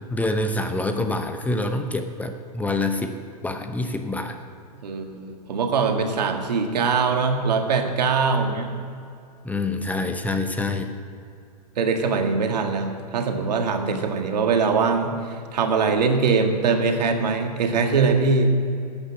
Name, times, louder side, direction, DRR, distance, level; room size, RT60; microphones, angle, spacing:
voice 1, 0.1-3.2 3.4-4.4 8.5-8.6 9.4-10.9, left 2 dB, 5° left, 6 dB, 0.8 m, -26 dB
voice 2, 4.8-8.7 11.8-18.5, right 4 dB, 80° right, 4 dB, 1.8 m, -22 dB
11.5 x 8.9 x 8.6 m, 2.4 s
hypercardioid pair, 120°, 21 cm